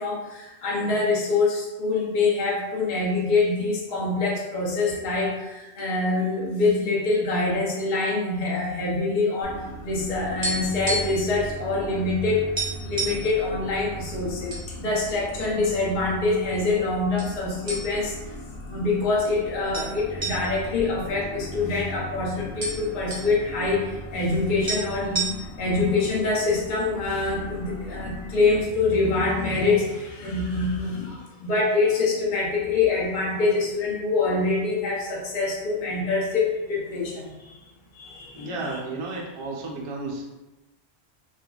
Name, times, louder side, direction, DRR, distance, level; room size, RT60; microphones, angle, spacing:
voice 1, 0.0-12.5 12.8-18.2 18.7-25.2 25.6-37.6 37.9-38.5, left 3 dB, 50° left, -3 dB, 0.8 m, -25 dB
sound 1, 9.4-28.6, equal, 85° left, 0.9 m, -39 dB
sound 2, 10.0-11.3 11.6-11.8 12.1-12.2 12.6-13.3 14.0-14.7 15.0-15.2 15.9-16.5 17.2-17.3 17.7-18.2 18.6-18.7 19.7-21.8 22.1-22.2 22.4-23.3 24.3-24.4 24.7-25.7, right 2 dB, 35° right, 0.7 m, -30 dB
voice 2, 38.3-40.3, right 3 dB, 55° right, -1 dB, 0.3 m, -33 dB
3.2 x 2.2 x 2.3 m, 1.1 s
omnidirectional pair, 1.1 m